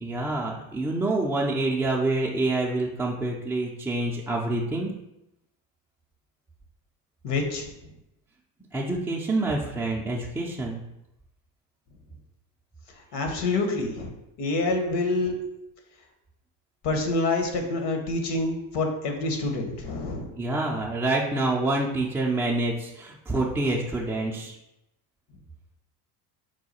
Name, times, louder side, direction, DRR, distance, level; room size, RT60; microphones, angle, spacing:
voice 1, 0.0-4.9 8.7-10.8 20.4-24.6, right 2 dB, 5° right, -3 dB, 0.4 m, -27 dB
voice 2, 7.2-7.7 13.1-14.1 14.4-15.3 16.8-20.3, left 2 dB, 55° left, 4 dB, 1.1 m, -27 dB
4.7 x 2.2 x 4.2 m, 0.88 s
hypercardioid pair, 80°, 48 cm